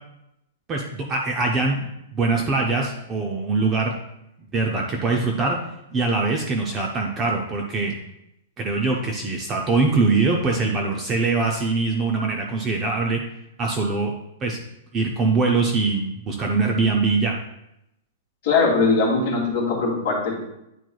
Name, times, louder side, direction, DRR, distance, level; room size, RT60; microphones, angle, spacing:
voice 1, 0.7-3.9 4.5-5.6 5.9-7.9 8.6-13.2 13.6-14.1 14.4-14.6 14.9-17.4, right 3 dB, 15° right, 1 dB, 0.4 m, -23 dB
voice 2, 18.4-20.4, left 3 dB, 35° left, -4 dB, 2.4 m, -21 dB
10.5 x 4.5 x 2.3 m, 0.85 s
supercardioid pair, 180°, 0 cm